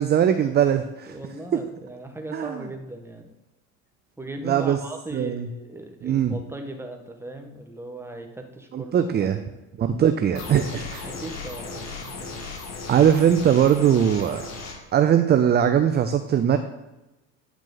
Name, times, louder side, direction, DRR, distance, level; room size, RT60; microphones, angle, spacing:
voice 1, 0.0-1.1 2.3-2.6 4.4-4.8 5.1-5.5 6.0-6.3 8.7-9.4 9.8-11.1 12.9-14.4 14.9-16.6, right 9 dB, 25° right, 8 dB, 0.5 m, -20 dB
voice 2, 1.1-3.3 4.2-9.5 11.1-12.3, right 1 dB, 5° right, 3 dB, 1.3 m, -38 dB
sound 1, 10.4-14.8, left 4 dB, 45° left, 1.9 m, -36 dB
9.1 x 4.8 x 4.0 m, 0.97 s
hypercardioid pair, 80°, 37 cm